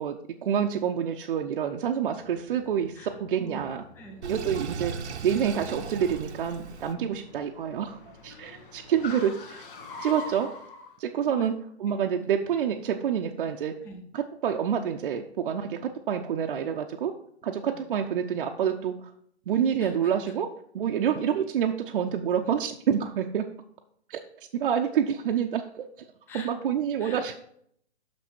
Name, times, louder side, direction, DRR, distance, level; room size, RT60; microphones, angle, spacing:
voice 1, 0.0-3.8 4.3-4.9 5.2-9.6 10.0-10.5 11.0-11.5 11.8-13.8 14.1-17.1 17.4-19.1 19.5-20.5 20.7-23.5 24.1-24.2 24.5-25.8 26.3-27.3, right 8 dB, 55° right, 2 dB, 0.6 m, -27 dB
Car, 2.0-10.9, left 3 dB, 50° left, 1.6 m, -45 dB
voice 2, 3.0-4.2 5.7-5.8 7.0-7.2 8.3-8.9 11.2-11.5 11.9-12.0 13.8-14.0 17.7-17.8 19.8-20.3 26.3-26.5 27.0-27.3, left 1 dB, 5° left, 4 dB, 0.4 m, -45 dB
Sink (filling or washing), 4.2-7.0, right 6 dB, 85° right, 0.9 m, -37 dB
6.1 x 6.0 x 4.4 m, 0.65 s
hypercardioid pair, 140°, 33 cm